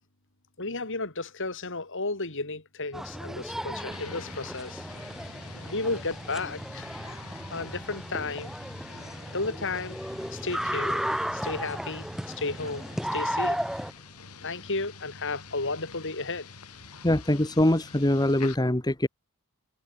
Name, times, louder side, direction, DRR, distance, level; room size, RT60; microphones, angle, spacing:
voice 1, 0.6-4.9 5.6-6.9 7.5-8.5 9.3-10.0 10.3-11.0 11.3-12.9 13.1-13.6 14.4-16.5, left 3 dB, 60° left, 5.8 m, -33 dB
sound 1, 2.9-13.9, equal, ahead, 1.5 m, -34 dB
sound 2, 3.9-18.5, left 4 dB, 85° left, 5.8 m, -47 dB
voice 2, 17.0-19.1, left 1 dB, 20° left, 1.6 m, -23 dB
head